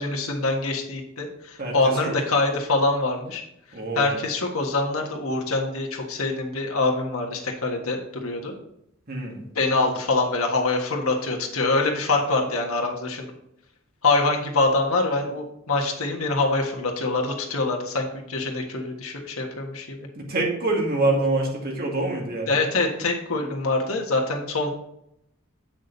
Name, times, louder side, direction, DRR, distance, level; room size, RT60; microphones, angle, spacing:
voice 1, 0.0-3.4 3.9-8.6 9.5-13.3 14.0-20.0 22.5-24.7, left 3 dB, 85° left, 1 dB, 1.5 m, -24 dB
voice 2, 1.6-2.1 3.7-4.1 9.1-9.4 20.3-22.6, right 2 dB, 45° right, -1 dB, 2.1 m, -25 dB
8.4 x 6.2 x 4.0 m, 0.77 s
head